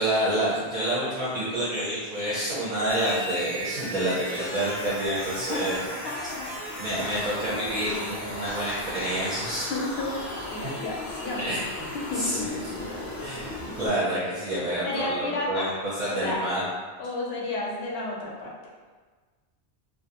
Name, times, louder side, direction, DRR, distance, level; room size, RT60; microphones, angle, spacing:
voice 1, 0.0-5.8 6.8-9.7 11.4-11.9 12.2-12.5 13.2-16.6, right 1 dB, 45° right, -9 dB, 0.6 m, -28 dB
sound 1, 2.9-13.9, left 1 dB, 25° left, 0.4 m, -36 dB
voice 2, 5.5-6.6 9.7-11.5 11.9-12.7 14.8-15.8 16.1-16.4 17.0-18.5, left 2 dB, 70° left, -2 dB, 0.8 m, -32 dB
2.4 x 2.0 x 2.8 m, 1.4 s
omnidirectional pair, 1.1 m